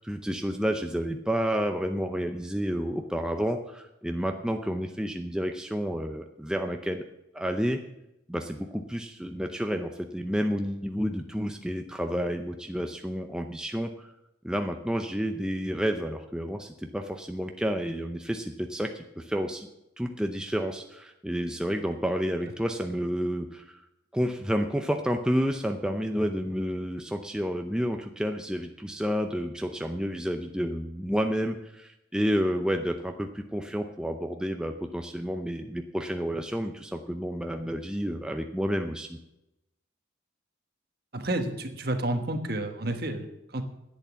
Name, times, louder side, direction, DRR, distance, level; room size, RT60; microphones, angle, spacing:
voice 1, 0.0-7.1 7.3-7.8 8.3-14.1 14.4-19.7 20.0-23.8 24.1-39.2, equal, 5° right, 4 dB, 0.6 m, -30 dB
voice 2, 41.1-43.6, right 1 dB, 50° right, 6 dB, 1.4 m, -30 dB
10.5 x 8.3 x 7.4 m, 0.88 s
head